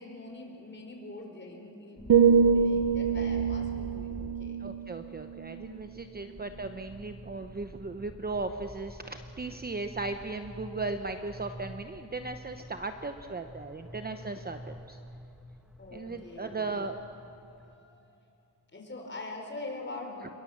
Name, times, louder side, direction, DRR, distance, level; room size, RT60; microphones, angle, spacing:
voice 1, 0.0-4.6 6.1-6.4 15.8-16.7 17.4-18.2 18.7-20.3, left 2 dB, 25° left, 1 dB, 5.2 m, -44 dB
sound 1, 2.0-17.8, equal, ahead, 1.2 m, -47 dB
sound 2, 2.1-6.1 6.4-6.8, right 6 dB, 55° right, 0.9 m, -26 dB
voice 2, 4.6-15.0 15.9-17.0 20.2-20.3, right 3 dB, 20° right, 7 dB, 0.9 m, -37 dB
27.0 x 23.0 x 7.3 m, 2.6 s
cardioid pair, 115°, 42 cm